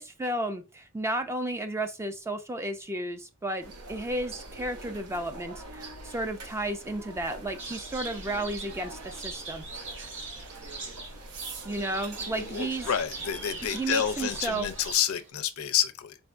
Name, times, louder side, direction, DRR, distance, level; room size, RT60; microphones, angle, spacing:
voice 1, 0.0-9.6 11.6-12.9 13.7-14.7, right 1 dB, 10° right, 0.3 m, -33 dB
sound 1, 3.6-14.9, right 2 dB, 90° right, 0.8 m, -44 dB
sound 2, 7.6-15.3, right 3 dB, 55° right, 1.4 m, -42 dB
voice 2, 12.1-16.2, left 9 dB, 65° left, 0.5 m, -29 dB
4.3 x 3.4 x 2.4 m
head